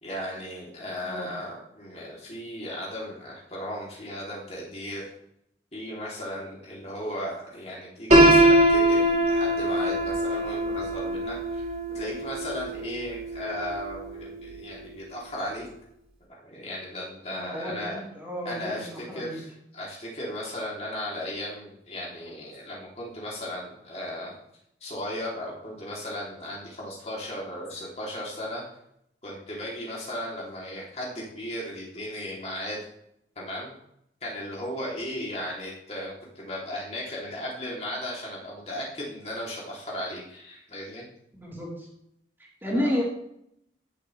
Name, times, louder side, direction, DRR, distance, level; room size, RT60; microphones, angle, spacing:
voice 1, 0.0-5.1 5.7-11.6 11.9-15.7 16.4-18.0 18.4-24.3 24.8-28.6 29.2-32.8 33.3-33.7 34.2-41.1 42.7-42.9, left 1 dB, 35° left, -4 dB, 3.1 m, -36 dB
Piano, 8.1-14.0, right 1 dB, 40° right, 3.6 m, -22 dB
voice 2, 17.3-19.4 41.3-41.9 42.6-43.0, left 1 dB, 10° right, -4 dB, 3.7 m, -31 dB
16.5 x 7.8 x 3.3 m, 0.74 s
head